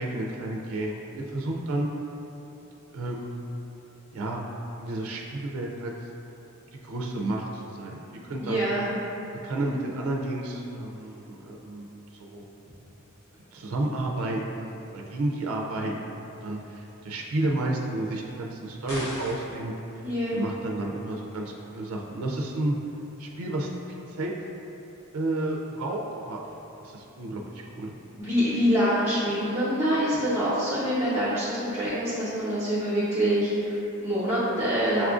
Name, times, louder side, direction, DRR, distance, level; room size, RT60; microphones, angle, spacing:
voice 1, 0.0-1.9 2.9-3.4 4.1-4.4 4.8-5.9 6.7-8.0 8.3-8.7 9.4-12.4 13.5-20.1 20.3-22.7 23.2-24.3 25.1-26.0 26.3-26.4 26.8-27.9, right 2 dB, 70° right, 0 dB, 0.4 m, -31 dB
voice 2, 8.4-8.9 20.0-20.4 28.2-35.1, equal, 10° right, -13 dB, 0.8 m, -25 dB
sound 1, 18.9-19.6, left 1 dB, 45° left, 0.7 m, -36 dB
6.9 x 2.4 x 2.4 m, 3.0 s
head